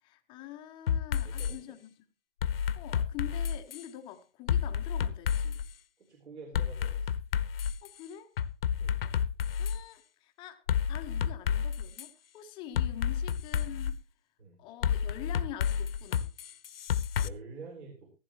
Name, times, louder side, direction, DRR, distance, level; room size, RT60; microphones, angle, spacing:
voice 1, 0.0-2.0 2.7-5.6 7.8-8.3 9.6-10.6 10.9-14.0 14.6-16.3, left 11 dB, 15° left, 0.7 m, -45 dB
sound 1, 0.9-1.5 2.4-3.9 4.5-5.7 6.5-7.9 8.4-9.8 10.7-12.1 12.8-13.9 14.8-17.3, left 8 dB, 50° left, 0.9 m, -30 dB
voice 2, 1.2-1.6 6.0-7.1 8.8-9.0 14.4-14.6 17.2-18.1, right 4 dB, 60° right, 4.1 m, -47 dB
15.5 x 14.5 x 3.0 m
hypercardioid pair, 140°, 37 cm